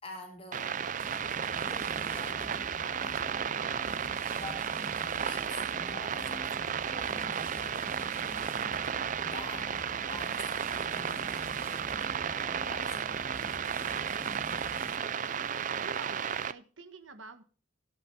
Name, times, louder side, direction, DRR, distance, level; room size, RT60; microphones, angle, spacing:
voice 1, 0.0-1.0 1.6-2.7 3.0-3.5 4.0-4.7 5.2-7.9 9.2-11.9 12.4-13.2, left 2 dB, 30° left, 3.2 m, -48 dB
sound 1, 0.5-16.5, right 7 dB, 40° right, 0.4 m, -33 dB
sound 2, 1.0-15.2, equal, 10° right, 1.8 m, -46 dB
voice 2, 14.2-15.3 15.8-17.4, right 3 dB, 70° right, 1.3 m, -50 dB
17.0 x 9.1 x 2.7 m
head